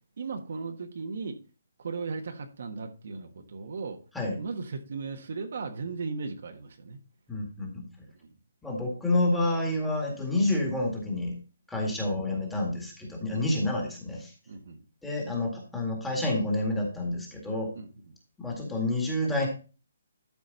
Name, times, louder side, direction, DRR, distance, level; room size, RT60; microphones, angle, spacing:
voice 1, 0.2-1.4 1.8-4.0 4.4-7.0 11.9-12.1 13.3-13.5 14.5-14.8 17.7-17.9, right 4 dB, 55° right, 5 dB, 1.4 m, -36 dB
voice 2, 7.3-7.8 8.6-11.3 11.7-14.3 15.0-17.7 18.4-19.5, left 2 dB, 5° left, -2 dB, 2.0 m, -29 dB
12.0 x 5.2 x 4.0 m, 0.34 s
hypercardioid pair, 170°, 0 cm